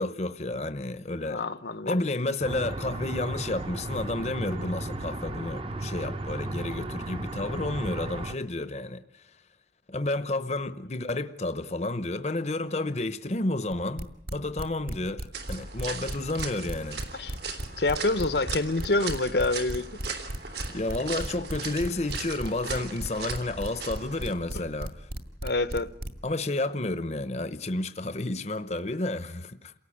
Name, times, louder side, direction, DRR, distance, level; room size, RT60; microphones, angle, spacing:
voice 1, 0.0-1.4 1.8-9.3 9.9-17.0 20.7-25.1 26.2-29.7, left 2 dB, 40° left, 0.8 m, -31 dB
voice 2, 1.2-2.0 17.1-19.9 25.4-25.9, left 2 dB, 70° left, 1.0 m, -27 dB
sound 1, 2.4-8.4, right 2 dB, 30° right, 0.9 m, -35 dB
sound 2, 13.7-26.3, equal, 55° right, 2.2 m, -35 dB
sound 3, 15.3-24.3, right 5 dB, 75° right, 3.4 m, -38 dB
28.5 x 17.5 x 8.6 m
head